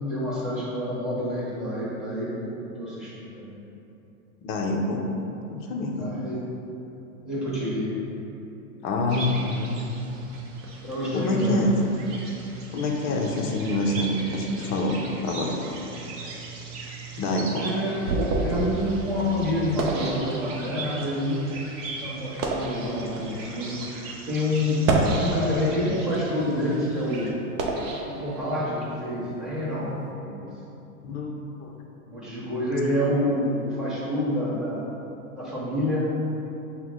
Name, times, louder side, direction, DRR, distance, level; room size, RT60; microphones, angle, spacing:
voice 1, 0.1-3.5 6.0-6.4 7.2-7.9 10.8-11.6 17.5-21.5 22.0-24.8 25.1-27.3 28.0-30.5 32.0-34.9 35.4-36.1, left 1 dB, ahead, -9 dB, 1.3 m, -28 dB
voice 2, 4.4-5.0 5.5-6.2 8.8-9.8 11.1-11.8 12.7-15.6 17.2-17.7 31.0-31.3 31.6-31.7, left 2 dB, 30° left, 0 dB, 0.5 m, -26 dB
sound 1, 9.1-27.3, right 2 dB, 30° right, 0.6 m, -39 dB
sound 2, 17.2-20.9 21.6-21.7 22.2-22.8 23.6-23.7 24.7-25.8 26.3-28.8, right 2 dB, 65° right, 0.7 m, -28 dB
5.6 x 2.1 x 3.7 m, 2.9 s
hypercardioid pair, 105°, 44 cm